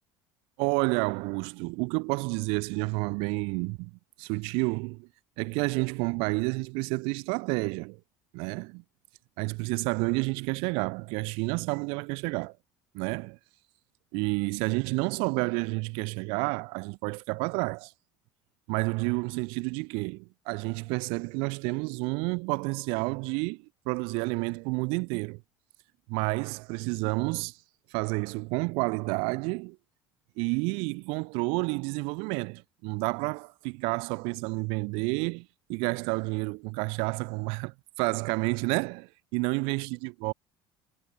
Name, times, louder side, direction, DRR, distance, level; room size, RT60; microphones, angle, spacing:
voice 1, 0.6-3.9 4.2-5.1 5.4-8.0 8.3-8.8 9.4-12.6 12.9-13.4 14.1-17.9 18.7-25.4 26.1-27.6 27.9-29.8 30.4-40.3, right 31 dB, 80° right, 4.0 m, -30 dB
cardioid pair, 175°, 9 cm